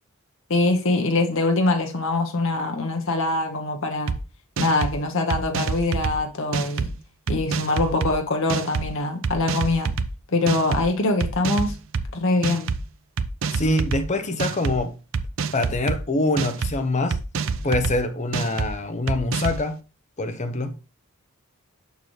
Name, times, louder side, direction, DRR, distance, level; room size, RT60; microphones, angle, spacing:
voice 1, 0.5-4.1 4.6-6.9 7.3-9.9 10.3-11.8 12.1-12.7, left 2 dB, 60° left, 1.0 m, -23 dB
sound 1, 4.1-4.2 4.6-5.0 5.3-6.2 6.5-6.9 7.3-8.1 8.5-8.9 9.2-10.1 10.5-10.8 11.2-12.1 12.4-12.8 13.2-14.0 14.4-14.8 15.1-16.0 16.4-16.7 17.1-18.0 18.3-18.7 19.1-19.6, right 5 dB, 60° right, 0.5 m, -26 dB
voice 2, 13.5-14.9 15.5-17.2 17.6-19.8 20.2-20.8, left 2 dB, 30° left, 0.8 m, -24 dB
6.7 x 6.1 x 3.2 m
head